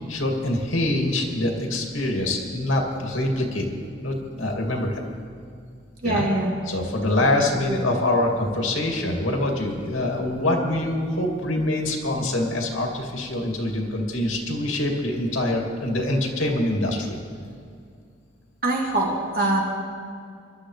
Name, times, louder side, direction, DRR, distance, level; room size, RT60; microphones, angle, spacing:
voice 1, 0.1-3.7 4.0-5.0 6.0-6.3 6.7-17.2, left 1 dB, 90° left, 1 dB, 2.5 m, -25 dB
voice 2, 6.0-6.5 7.7-7.8 18.6-19.6, right 2 dB, 45° right, -3 dB, 2.9 m, -23 dB
24.5 x 12.0 x 3.3 m, 2.3 s
head